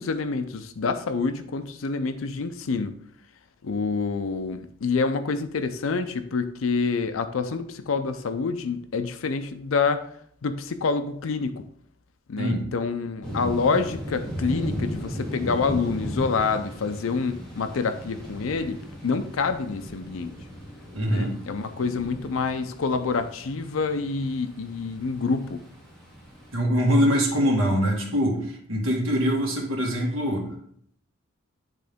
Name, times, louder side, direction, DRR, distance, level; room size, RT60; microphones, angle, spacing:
voice 1, 0.0-3.0 3.6-10.1 10.4-11.6 12.3-20.3 21.1-25.6, left 4 dB, 75° left, 10 dB, 0.5 m, -27 dB
sound 1, 13.2-26.5, equal, 5° left, 2.1 m, -37 dB
voice 2, 20.9-21.4 26.5-30.5, equal, 90° right, 0 dB, 1.8 m, -23 dB
10.0 x 3.7 x 3.5 m, 0.66 s
head